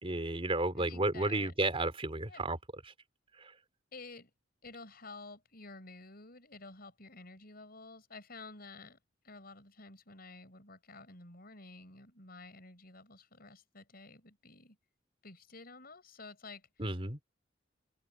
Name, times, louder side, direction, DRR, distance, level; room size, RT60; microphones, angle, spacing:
voice 1, 0.0-2.6 16.8-17.2, right 2 dB, 30° right, 4.1 m, -32 dB
voice 2, 0.7-1.6 2.3-2.5 3.9-4.3 4.6-9.0 9.2-14.8 15.2-16.9, left 3 dB, 55° left, 6.9 m, -51 dB
head